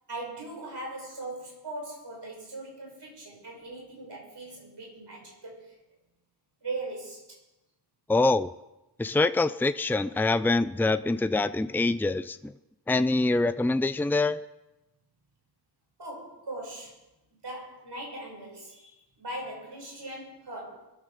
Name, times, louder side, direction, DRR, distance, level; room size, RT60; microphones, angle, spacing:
voice 1, 0.1-5.8 6.6-7.4 16.0-17.0 17.3-20.9, right 2 dB, 80° right, -1 dB, 6.1 m, -40 dB
voice 2, 8.1-8.5 9.0-12.5 12.9-14.4, left 2 dB, 5° left, 13 dB, 0.5 m, -25 dB
21.5 x 12.5 x 5.0 m, 0.98 s
wide cardioid pair, 60°, 41 cm